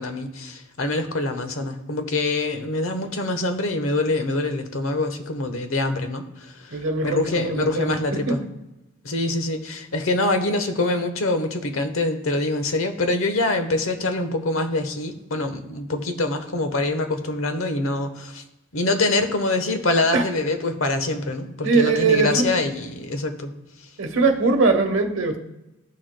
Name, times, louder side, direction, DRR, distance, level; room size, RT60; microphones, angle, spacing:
voice 1, 0.0-8.4 9.0-18.4 18.7-23.5, left 2 dB, 90° left, 7 dB, 1.0 m, -25 dB
voice 2, 6.7-8.4 20.1-20.2 21.6-22.6 24.0-25.4, right 3 dB, 75° right, 5 dB, 1.0 m, -21 dB
14.0 x 6.3 x 2.2 m, 0.96 s
head